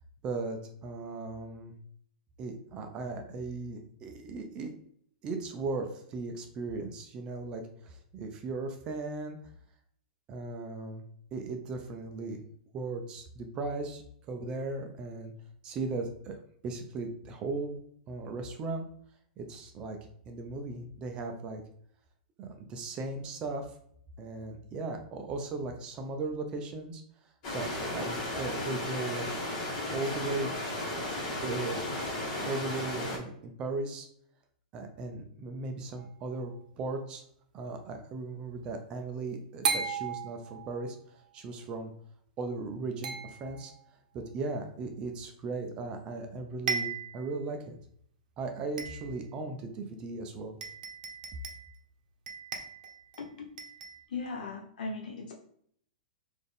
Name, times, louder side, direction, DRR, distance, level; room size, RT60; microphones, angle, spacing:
voice 1, 0.2-1.7 2.4-4.7 5.2-9.4 10.3-11.0 11.3-12.4 12.7-15.3 15.6-16.4 16.6-17.8 18.1-18.9 19.4-20.0 20.3-21.6 22.4-23.7 24.2-27.0 27.5-29.2 29.9-30.5 31.4-32.0 32.4-34.1 34.7-37.2 37.5-41.9 42.4-43.7 44.1-47.8 48.4-50.6, right 3 dB, 20° right, 5 dB, 0.4 m, -37 dB
sound 1, 27.4-33.2, left 1 dB, 35° left, 1.2 m, -34 dB
sound 2, 36.0-36.5 39.6-41.0 43.0-43.8 45.9-46.0 46.3-46.4 46.7-47.3 47.8-47.9 48.8-49.3 50.2-50.3 50.6-51.7 52.3-53.2 53.6-54.0, right 5 dB, 65° right, 0.7 m, -36 dB
voice 2, 54.1-55.3, left 4 dB, 70° left, 0 dB, 1.1 m, -38 dB
4.0 x 2.5 x 3.4 m, 0.65 s
supercardioid pair, 170°, 5 cm